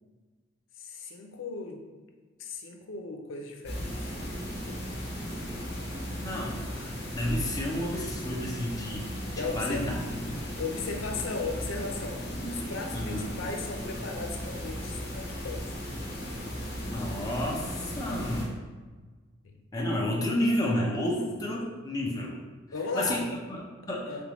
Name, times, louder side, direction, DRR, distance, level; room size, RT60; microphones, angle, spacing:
voice 1, 0.8-1.8 2.4-3.9 4.4-4.8 9.3-9.9 10.6-15.7 19.4-19.6 22.7-23.4 24.1-24.2, left 4 dB, 90° left, 3 dB, 0.5 m, -36 dB
sound 1, 3.6-18.4, equal, 55° left, 0.9 m, -36 dB
voice 2, 6.2-9.2 9.6-10.3 12.9-13.3 16.9-18.6 19.7-22.4 22.9-24.2, left 1 dB, 20° left, -3 dB, 0.5 m, -31 dB
3.7 x 3.5 x 3.0 m, 1.4 s
head